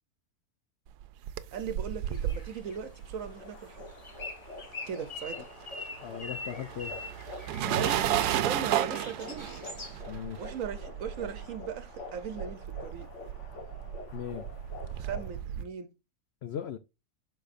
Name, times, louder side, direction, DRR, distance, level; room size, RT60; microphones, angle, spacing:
sound 1, 1.0-4.7 4.9-15.7, right 11 dB, 85° right, 1.1 m, -34 dB
voice 1, 1.5-3.9 4.9-5.5 7.7-9.5 10.4-13.1 15.0-15.9, right 7 dB, 65° right, 1.1 m, -39 dB
sound 2, 2.1-10.0, left 3 dB, 30° left, 0.8 m, -44 dB
sound 3, 3.2-15.4, left 3 dB, 50° left, 1.5 m, -47 dB
voice 2, 6.0-7.0 10.1-10.6 14.1-14.5 16.4-16.8, left 9 dB, 75° left, 0.6 m, -38 dB
11.5 x 4.2 x 2.5 m
omnidirectional pair, 1.7 m